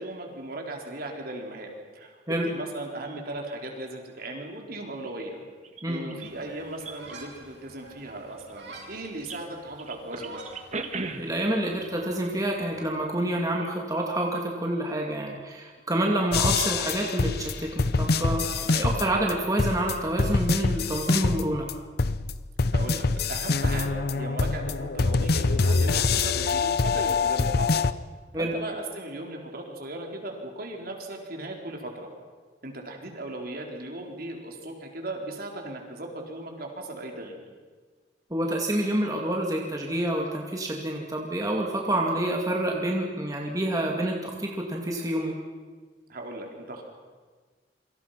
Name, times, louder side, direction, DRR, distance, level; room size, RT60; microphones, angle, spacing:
voice 1, 0.0-5.4 5.8-10.4 18.6-18.9 22.7-27.7 28.3-32.1 32.6-37.4 41.9-42.1 46.1-46.8, right 2 dB, 55° right, 1 dB, 4.6 m, -37 dB
sound 1, 5.0-5.2 5.6-6.3 6.7-7.2 8.3-9.4 9.8-11.5 12.3-12.5 12.8-12.9, right 3 dB, 40° right, 1.9 m, -37 dB
voice 2, 5.8-6.2 11.2-21.7 28.3-28.5 38.3-45.4, right 1 dB, 20° right, 0 dB, 2.6 m, -28 dB
sound 2, 6.2-12.9, right 2 dB, 75° right, 7.6 m, -48 dB
sound 3, 16.3-19.3 19.6-21.7 22.0-27.9, left 4 dB, 60° left, 0.8 m, -25 dB
27.5 x 25.5 x 6.0 m, 1.5 s
head